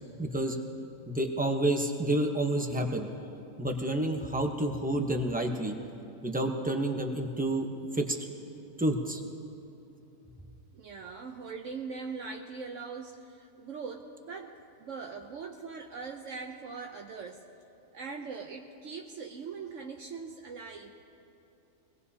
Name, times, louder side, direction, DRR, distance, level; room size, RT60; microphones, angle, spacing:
voice 1, 0.2-0.6 1.1-3.1 3.6-5.7 6.2-7.7 7.9-8.3 8.8-9.2, right 1 dB, 10° right, 3 dB, 0.8 m, -29 dB
voice 2, 10.7-17.4 17.9-21.0, right 5 dB, 70° right, 3 dB, 1.1 m, -41 dB
24.0 x 18.5 x 2.8 m, 2.8 s
omnidirectional pair, 1.4 m